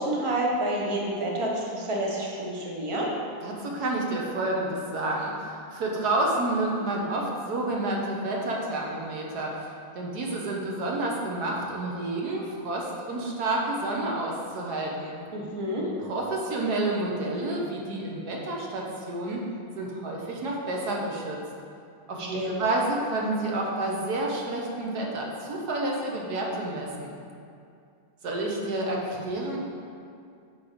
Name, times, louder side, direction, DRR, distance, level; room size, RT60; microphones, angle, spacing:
voice 1, 0.0-3.1 15.3-15.9 22.1-22.6, right 1 dB, 25° right, -3 dB, 0.7 m, -29 dB
voice 2, 3.4-9.7 9.9-15.2 16.0-19.4 19.8-21.4 22.1-27.1 28.2-29.6, right 2 dB, 55° right, -2 dB, 1.5 m, -29 dB
7.9 x 4.5 x 5.1 m, 2.4 s
omnidirectional pair, 2.2 m